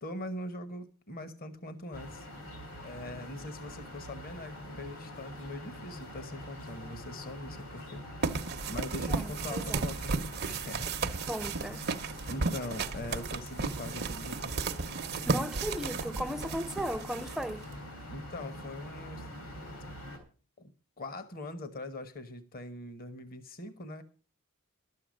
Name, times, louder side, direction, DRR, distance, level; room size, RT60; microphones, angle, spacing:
voice 1, 0.0-2.3 2.8-8.4 8.7-10.1 10.5-10.9 12.3-14.5 18.1-19.3 20.6-20.7 21.0-24.0, left 1 dB, 40° left, 1.1 m, -42 dB
sound 1, 1.9-20.2, left 1 dB, 85° left, 4.4 m, -45 dB
sound 2, 8.2-17.7, right 4 dB, 50° right, 0.8 m, -34 dB
voice 2, 9.1-9.9 11.3-11.9 15.3-17.7, equal, ahead, 0.5 m, -36 dB
12.5 x 7.7 x 6.3 m
head